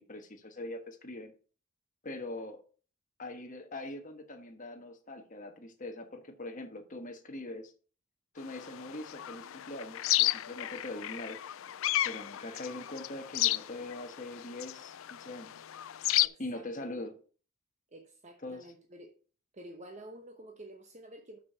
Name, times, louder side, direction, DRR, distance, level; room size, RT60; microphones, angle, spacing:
voice 1, 0.0-1.3 2.0-2.6 3.2-7.7 8.3-11.4 12.0-15.5 16.4-17.2 18.4-18.7, left 2 dB, 35° left, 1.4 m, -42 dB
sound 1, 8.4-16.3, left 15 dB, 65° left, 0.4 m, -33 dB
voice 2, 16.2-17.0 17.9-19.1 19.5-21.4, right 1 dB, 30° right, 0.9 m, -50 dB
6.8 x 6.6 x 5.6 m
head